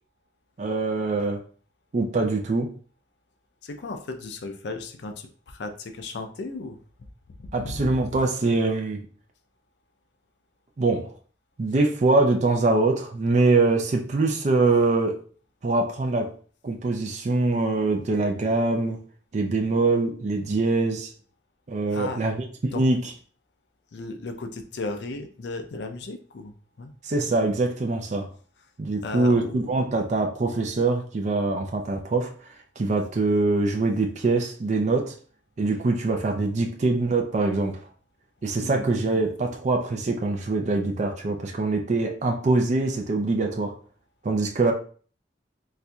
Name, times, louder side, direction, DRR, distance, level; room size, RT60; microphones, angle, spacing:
voice 1, 0.6-1.4 1.9-2.7 7.5-9.1 10.8-11.1 11.6-15.2 15.6-16.3 16.6-19.0 19.3-21.1 21.7-23.0 27.0-28.3 28.8-32.3 32.8-35.1 35.6-37.8 38.4-43.7 44.2-44.7, right 3 dB, 40° right, 2 dB, 0.4 m, -23 dB
voice 2, 3.6-6.8 7.4-7.9 21.9-22.2 22.7-22.9 23.9-26.9 29.0-29.6 38.6-38.9, left 3 dB, 70° left, 6 dB, 0.5 m, -35 dB
4.2 x 2.6 x 2.3 m, 0.43 s
head